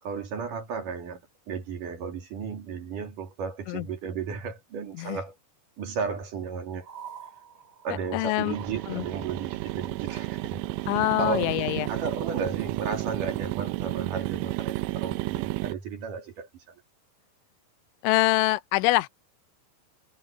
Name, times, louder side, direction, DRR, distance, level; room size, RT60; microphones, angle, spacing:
voice 1, 0.0-1.2 1.5-5.4 5.8-6.9 7.8-10.6 11.2-11.6 11.9-16.7, right 5 dB, 50° right, 3.5 m, -34 dB
sound 1, 6.8-12.3, right 8 dB, 20° right, 3.8 m, -49 dB
voice 2, 8.1-8.6 8.9-9.1 10.9-11.9 18.0-19.1, left 19 dB, 85° left, 3.0 m, -24 dB
sound 2, 8.3-15.7, right 19 dB, 80° right, 3.0 m, -32 dB
omnidirectional pair, 5.4 m